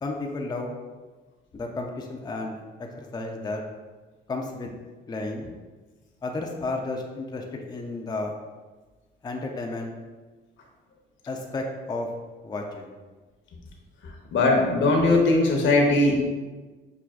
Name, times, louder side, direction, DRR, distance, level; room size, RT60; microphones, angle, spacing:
voice 1, 0.0-0.7 1.5-2.6 3.0-3.6 4.3-4.7 5.1-5.5 6.2-8.3 9.2-9.9 11.3-12.1 12.4-12.9, left 2 dB, 20° left, 1 dB, 0.4 m, -32 dB
voice 2, 14.3-16.2, left 2 dB, 70° left, 0 dB, 0.9 m, -20 dB
5.9 x 2.4 x 2.4 m, 1.3 s
cardioid pair, 90°, 20 cm